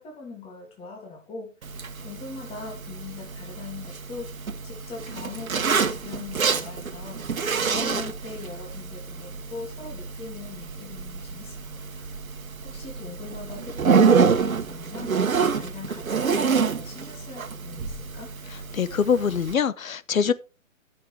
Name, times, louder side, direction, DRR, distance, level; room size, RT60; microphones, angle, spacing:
voice 1, 0.0-1.5 2.0-12.1 12.6-18.3, left 4 dB, 15° left, 2.6 m, -41 dB
Zipper (clothing), 1.6-19.5, right 5 dB, 85° right, 1.4 m, -27 dB
voice 2, 18.7-20.3, left 6 dB, 85° left, 0.9 m, -23 dB
15.5 x 6.7 x 3.4 m
hypercardioid pair, 140°, 40 cm